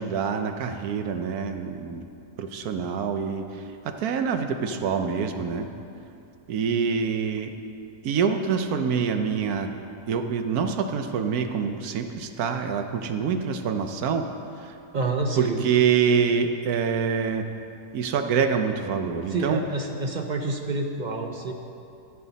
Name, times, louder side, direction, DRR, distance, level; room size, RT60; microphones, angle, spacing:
voice 1, 0.0-2.0 2.4-3.5 3.8-5.7 6.5-7.5 8.0-9.7 10.1-14.3 14.6-14.7 15.4-17.5 17.9-19.6, right 6 dB, 80° right, 7 dB, 1.2 m, -26 dB
voice 2, 14.9-15.6 19.3-21.5, right 3 dB, 55° right, 3 dB, 0.5 m, -28 dB
14.0 x 8.3 x 4.0 m, 2.7 s
omnidirectional pair, 1.6 m